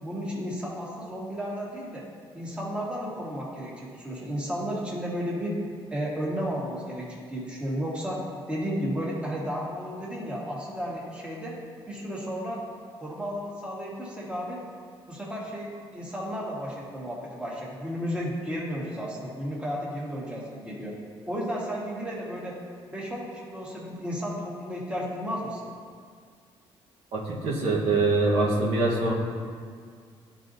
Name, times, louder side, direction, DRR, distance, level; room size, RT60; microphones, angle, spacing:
voice 1, 0.0-2.0 2.3-5.6 5.9-8.2 8.5-11.6 11.9-12.6 13.0-14.6 15.1-20.9 21.3-22.5 22.9-25.7, equal, 10° right, -5 dB, 1.4 m, -33 dB
voice 2, 27.1-29.1, right 3 dB, 80° right, -4 dB, 1.2 m, -24 dB
12.0 x 3.9 x 2.7 m, 2.1 s
cardioid pair, 115°, 10 cm